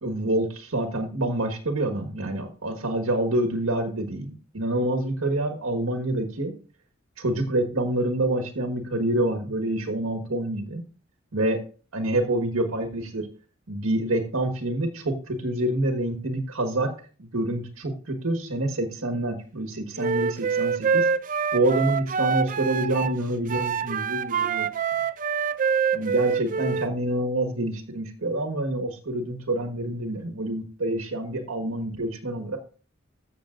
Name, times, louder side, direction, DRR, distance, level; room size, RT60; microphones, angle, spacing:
voice 1, 0.0-6.5 7.2-10.8 11.3-11.6 11.9-13.3 13.7-16.9 17.2-21.1 21.5-24.7 25.9-32.6, right 1 dB, 80° right, 4 dB, 1.5 m, -27 dB
Wind instrument woodwind instrument, 20.0-23.2 23.5-26.9, right 6 dB, 40° right, 0.5 m, -26 dB
14.0 x 6.9 x 2.5 m, 0.38 s
head